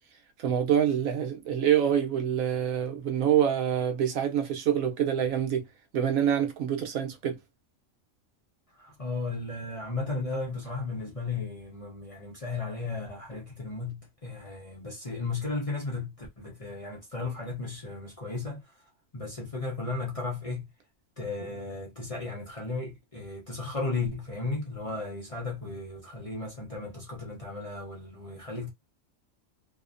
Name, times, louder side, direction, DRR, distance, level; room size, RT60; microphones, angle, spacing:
voice 1, 0.4-5.7 5.9-7.4, right 9 dB, 80° right, 1.1 m, -26 dB
voice 2, 8.8-18.6 19.1-20.7 21.2-28.7, left 3 dB, 35° left, 0.6 m, -35 dB
2.8 x 2.1 x 2.4 m
omnidirectional pair, 1.4 m